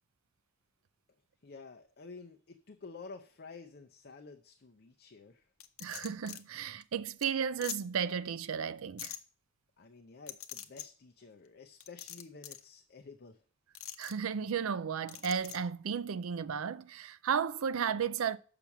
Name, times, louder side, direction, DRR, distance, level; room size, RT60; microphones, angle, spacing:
voice 1, 1.4-5.5 9.8-13.4, left 4 dB, 50° left, 0.7 m, -51 dB
sound 1, 5.6-6.4 6.8-6.9 7.2-7.3 7.6-7.8 9.0-9.2 10.3-10.9 11.8-12.6 13.7-14.1 15.1-15.6, left 11 dB, 80° left, 0.8 m, -43 dB
voice 2, 5.8-9.1 14.0-18.4, right 7 dB, 70° right, 0.4 m, -34 dB
6.8 x 6.0 x 7.1 m
head